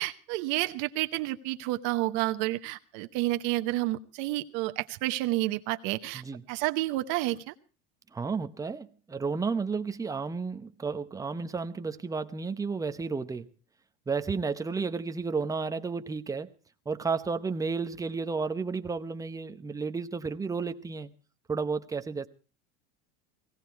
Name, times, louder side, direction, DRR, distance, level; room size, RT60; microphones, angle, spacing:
voice 1, 0.0-6.2 6.5-7.5, right 17 dB, 60° right, 1.0 m, -30 dB
voice 2, 8.1-13.5 14.1-16.5 16.9-21.1 21.5-22.3, right 4 dB, 10° right, 0.7 m, -32 dB
17.5 x 17.0 x 4.6 m
supercardioid pair, 145°, 36 cm